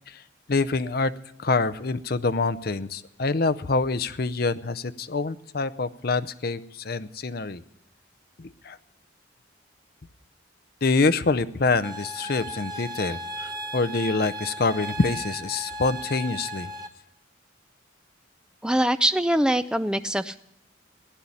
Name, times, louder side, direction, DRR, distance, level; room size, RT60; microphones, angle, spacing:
voice 1, 0.5-1.1 1.4-7.6 8.4-8.8 10.8-16.7, left 3 dB, 50° left, 13 dB, 0.6 m, -26 dB
sound 1, 11.8-16.9, equal, 20° right, 1.0 m, -36 dB
voice 2, 18.6-20.4, right 1 dB, 5° right, 11 dB, 0.5 m, -23 dB
16.0 x 10.5 x 8.5 m, 0.85 s
head